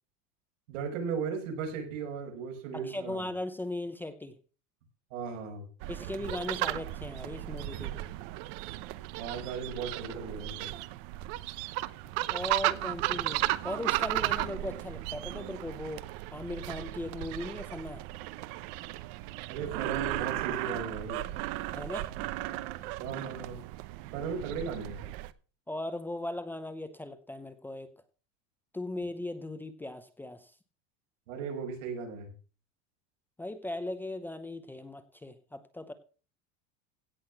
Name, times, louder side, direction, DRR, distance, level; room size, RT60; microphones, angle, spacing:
voice 1, 0.7-3.3 5.1-5.7 9.2-10.7 19.5-21.3 23.0-23.6 24.1-25.0 31.3-32.3, right 6 dB, 85° right, 5.7 m, -36 dB
voice 2, 2.7-4.3 5.9-8.0 12.3-18.0 21.7-22.1 25.7-27.9 28.7-30.5 33.4-35.9, left 1 dB, 5° left, 0.7 m, -38 dB
sound 1, 5.8-25.3, right 17 dB, 50° right, 0.8 m, -35 dB
17.0 x 6.3 x 7.1 m
supercardioid pair, 170°, 38 cm